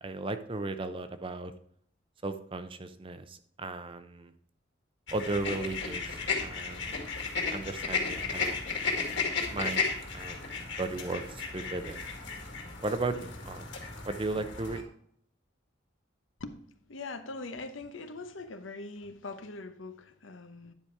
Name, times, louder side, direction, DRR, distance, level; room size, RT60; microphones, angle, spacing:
voice 1, 0.0-1.5 2.2-4.3 5.1-7.2 7.5-8.6 9.5-12.0 12.8-13.7 14.0-14.8, right 2 dB, 25° right, 10 dB, 0.6 m, -36 dB
sound 1, 5.1-14.8, left 4 dB, 65° left, 2.3 m, -34 dB
voice 2, 16.9-20.7, left 3 dB, 80° left, 9 dB, 0.9 m, -42 dB
10.0 x 5.1 x 4.6 m, 0.66 s
head